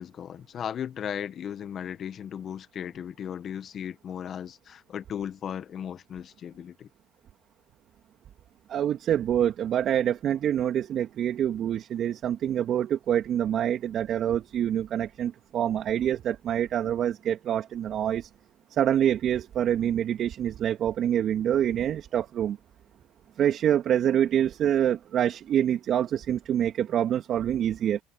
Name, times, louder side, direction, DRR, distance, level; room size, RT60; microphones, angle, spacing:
voice 1, 0.0-6.9, left 9 dB, 50° left, 1.6 m, -36 dB
voice 2, 8.7-18.3 18.7-22.6 23.4-28.0, right 10 dB, 55° right, 2.7 m, -26 dB
hypercardioid pair, 70°, 0 cm